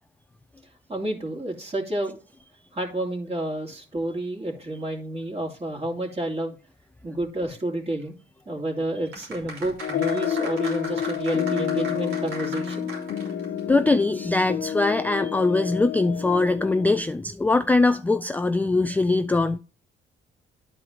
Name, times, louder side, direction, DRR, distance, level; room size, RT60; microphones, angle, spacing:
voice 1, 0.9-2.2 2.7-6.5 7.0-8.2 8.5-12.9, right 1 dB, 30° right, 2.7 m, -30 dB
sound 1, 9.1-13.6 13.9-14.0, right 2 dB, 90° right, 3.9 m, -37 dB
sound 2, 9.8-17.0, left 9 dB, 70° left, 1.2 m, -29 dB
voice 2, 13.7-19.6, left 3 dB, 10° left, 0.3 m, -22 dB
11.0 x 4.7 x 3.8 m
cardioid pair, 90°, 20 cm